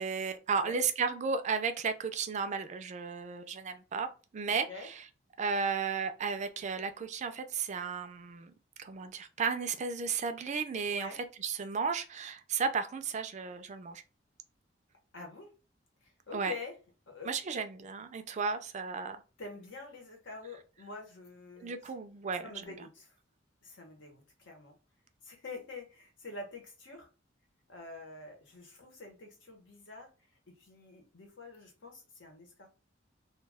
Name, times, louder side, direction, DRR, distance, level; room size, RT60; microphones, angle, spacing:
voice 1, 0.0-5.1 5.4-8.5 8.8-14.0 16.3-16.5 17.2-19.2 21.6-22.9, right 5 dB, 40° right, 0.4 m, -34 dB
voice 2, 4.5-4.9 10.9-11.2 15.1-15.5 16.3-16.7 17.1-17.3 19.4-21.7 22.4-23.1 23.6-24.8 25.2-27.1 27.7-30.1 30.5-32.7, left 3 dB, 70° left, 1.0 m, -46 dB
2.3 x 2.3 x 3.3 m
head